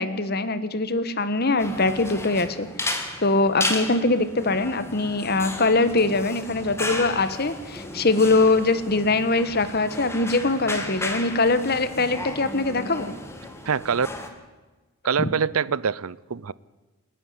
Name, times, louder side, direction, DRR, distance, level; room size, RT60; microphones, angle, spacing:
voice 1, 0.0-2.9 3.2-13.1 15.2-15.3, left 3 dB, 45° left, 1.3 m, -22 dB
sound 1, 1.6-14.3, left 2 dB, 10° left, 2.1 m, -34 dB
voice 2, 13.7-14.1 15.0-16.5, right 6 dB, 85° right, 0.6 m, -24 dB
28.0 x 11.0 x 9.6 m
head